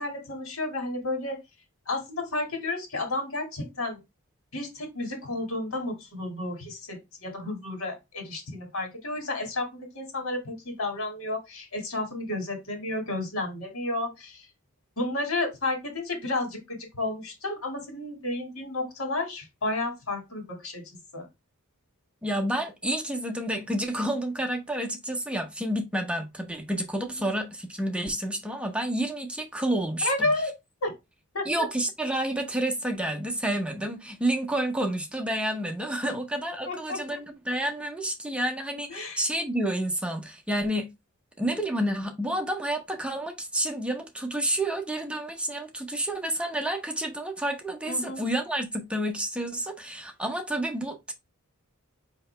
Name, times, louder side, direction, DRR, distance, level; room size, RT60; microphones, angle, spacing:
voice 1, 0.0-1.4 1.9-4.0 4.5-14.5 15.0-21.3 27.0-27.3 30.0-30.5 30.8-30.9 31.3-31.7 36.0-36.2 36.7-37.0 38.9-39.2 47.9-48.2, left 2 dB, 65° left, 1.8 m, -32 dB
voice 2, 22.2-30.3 31.4-40.9 41.4-51.1, right 1 dB, 5° right, 0.7 m, -29 dB
5.2 x 2.8 x 3.2 m
head